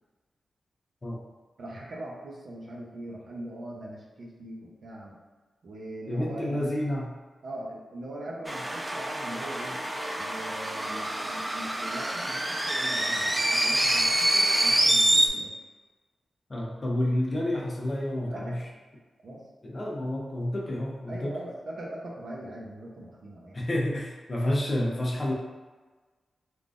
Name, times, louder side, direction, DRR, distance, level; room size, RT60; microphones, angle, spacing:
voice 1, 1.6-5.2 5.6-6.7 7.4-9.8 10.1-15.5 18.3-18.6 19.2-19.4 21.1-23.6, right 1 dB, 65° right, -3 dB, 0.7 m, -41 dB
voice 2, 6.1-7.1 16.5-18.6 19.6-21.3 23.5-25.3, left 1 dB, 35° left, -3 dB, 0.7 m, -29 dB
sound 1, 8.5-15.3, right 1 dB, 15° right, 0.3 m, -26 dB
3.6 x 2.5 x 2.5 m, 1.3 s
wide cardioid pair, 100°, 0 cm